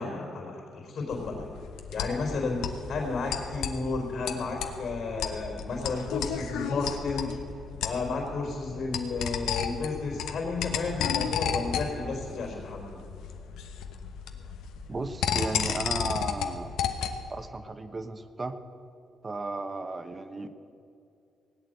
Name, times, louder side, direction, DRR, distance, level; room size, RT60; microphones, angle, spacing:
voice 1, 0.0-1.5 1.9-2.6 2.9-7.4 7.8-13.0, left 3 dB, 65° left, -1 dB, 4.2 m, -32 dB
sound 1, 1.1-17.3, left 7 dB, 85° left, 1.0 m, -33 dB
voice 2, 14.9-16.7 17.3-18.6 19.2-20.5, right 3 dB, 30° right, 9 dB, 1.1 m, -35 dB
18.0 x 8.8 x 8.0 m, 2.5 s
cardioid pair, 75°, 0 cm